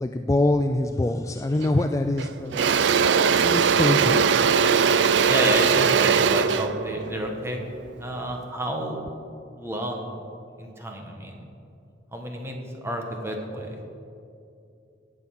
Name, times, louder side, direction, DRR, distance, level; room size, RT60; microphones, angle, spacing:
voice 1, 0.0-2.7 3.0-4.2, left 2 dB, 15° left, 7 dB, 0.3 m, -25 dB
Engine / Drill, 1.6-1.8 2.2-8.3, right 6 dB, 70° right, 0.4 m, -21 dB
voice 2, 5.3-7.6 8.0-9.0 9.6-10.2 10.6-11.4 12.1-13.7, right 1 dB, 15° right, 2 dB, 1.5 m, -30 dB
16.0 x 7.8 x 6.0 m, 2.6 s
head